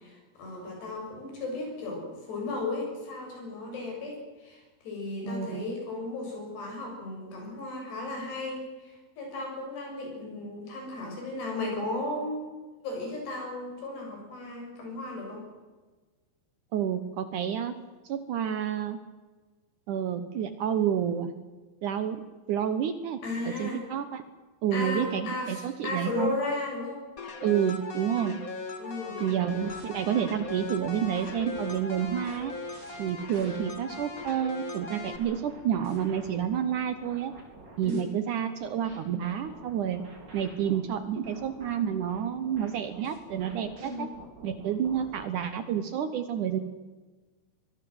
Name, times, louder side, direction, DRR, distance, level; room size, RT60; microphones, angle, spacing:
voice 1, 0.0-12.5 12.8-15.4 23.2-23.8 24.7-27.0 28.8-29.3 37.8-38.1 43.8-44.1, left 2 dB, 85° left, 1 dB, 9.3 m, -35 dB
voice 2, 5.2-5.7 16.7-17.7 18.0-19.0 19.9-21.3 21.8-22.2 22.5-24.2 24.6-26.3 27.4-28.4 29.2-32.5 33.0-37.3 37.8-40.0 40.3-44.1 44.4-46.6, right 9 dB, 70° right, 11 dB, 2.1 m, -29 dB
sound 1, 27.2-35.2, left 3 dB, 40° left, 1.3 m, -39 dB
sound 2, 29.5-34.3 34.8-38.0 38.6-45.3, right 2 dB, 25° right, 4.9 m, -49 dB
24.5 x 20.0 x 7.9 m, 1.3 s
omnidirectional pair, 4.7 m